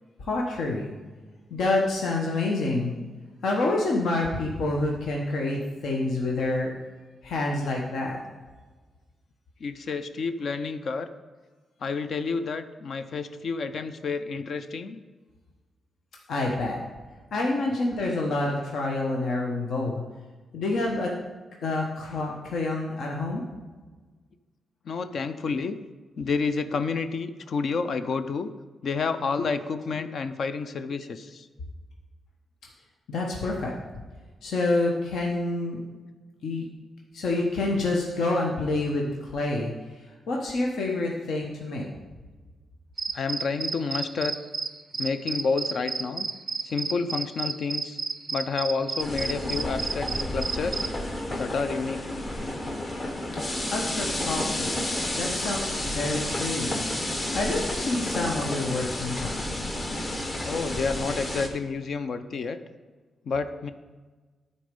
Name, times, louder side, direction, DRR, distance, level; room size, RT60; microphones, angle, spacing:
voice 1, 0.2-0.9 1.5-2.9 3.4-6.7 7.2-8.2 16.3-16.8 17.3-20.0 20.5-21.2 21.6-23.4 33.1-33.7 34.4-35.8 36.4-36.7 37.1-39.7 40.3-41.9 53.7-56.8 57.3-59.4, left 2 dB, 70° left, -1 dB, 1.0 m, -27 dB
voice 2, 9.6-11.1 11.8-15.0 24.9-25.8 26.2-28.5 28.8-31.5 43.1-44.3 45.0-46.3 46.6-48.0 48.3-50.9 51.4-52.0 60.4-62.6 63.2-63.7, left 4 dB, 55° left, 10 dB, 0.5 m, -29 dB
sound 1, 43.0-51.0, right 4 dB, 30° right, 0.4 m, -32 dB
sound 2, 49.0-61.5, left 1 dB, 25° left, 1.0 m, -31 dB
12.5 x 4.3 x 5.2 m, 1.3 s
wide cardioid pair, 150°, 0 cm